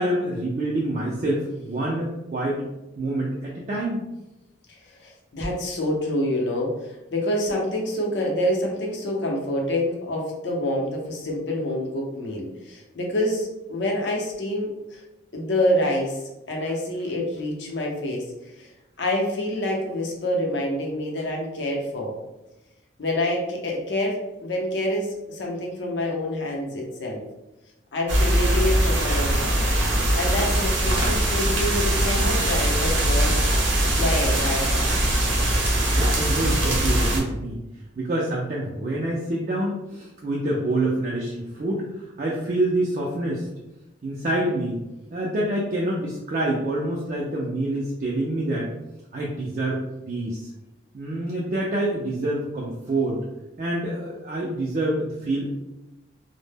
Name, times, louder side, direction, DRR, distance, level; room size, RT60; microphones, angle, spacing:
voice 1, 0.0-2.6 3.0-4.0 35.9-37.6 38.0-43.5 44.0-44.8 45.1-48.7 49.1-50.5 50.9-53.2 53.6-55.5, right 1 dB, 40° right, -4 dB, 0.3 m, -26 dB
voice 2, 4.7-15.0 15.3-18.3 18.5-18.7 19.0-22.1 23.0-27.2 27.9-29.6 30.1-33.4 33.8-34.9, left 1 dB, 65° left, -1 dB, 0.6 m, -27 dB
sound 1, 28.1-37.2, right 1 dB, 70° right, 0.7 m, -21 dB
2.0 x 2.0 x 3.3 m, 0.99 s
head